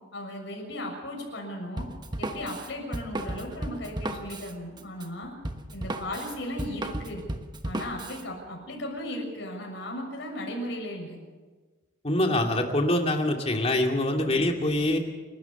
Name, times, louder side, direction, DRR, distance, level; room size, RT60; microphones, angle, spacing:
voice 1, 0.1-1.9 2.2-5.3 5.7-7.2 7.6-11.2 14.2-14.6, left 1 dB, 65° left, 1 dB, 6.8 m, -36 dB
Drum kit, 1.8-8.2, right 1 dB, 25° right, 1.3 m, -35 dB
voice 2, 12.0-15.0, left 1 dB, 35° left, 2 dB, 2.5 m, -24 dB
29.0 x 13.0 x 7.2 m, 1.3 s
head